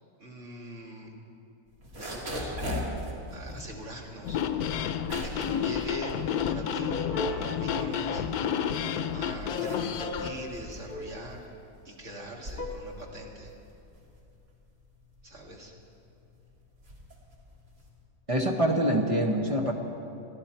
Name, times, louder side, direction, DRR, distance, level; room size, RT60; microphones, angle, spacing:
voice 1, 0.2-1.1 1.9-2.6 3.3-4.4 5.0-8.2 9.1-11.5 11.8-13.5 15.2-15.7, equal, 55° right, -1 dB, 2.3 m, -42 dB
sound 1, 1.7-7.0 7.3-8.8 9.3-18.0, equal, 75° right, 3.0 m, -40 dB
sound 2, 4.2-10.3, left 8 dB, 90° left, 1.2 m, -30 dB
sound 3, 6.6-7.6 10.1-10.4 10.8-11.4 12.6-12.7, left 2 dB, 40° left, 1.7 m, -37 dB
voice 2, 18.3-19.7, right 1 dB, 25° right, 1 dB, 1.3 m, -25 dB
28.0 x 11.0 x 4.5 m, 2.7 s
omnidirectional pair, 1.5 m